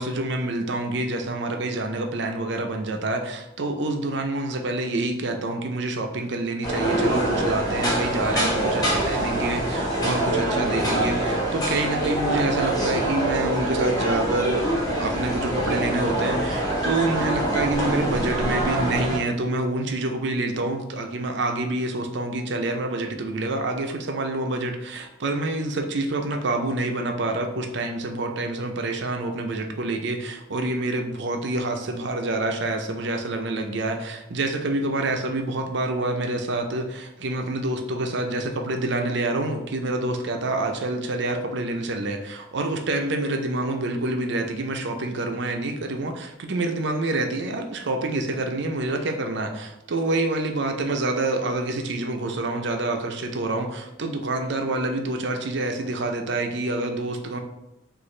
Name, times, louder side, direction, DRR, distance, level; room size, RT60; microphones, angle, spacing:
voice 1, 0.0-14.7 15.0-57.4, right 2 dB, 65° right, 5 dB, 0.6 m, -27 dB
sound 1, 6.6-19.2, right 1 dB, 20° left, 1.1 m, -25 dB
6.3 x 2.6 x 3.2 m, 0.92 s
head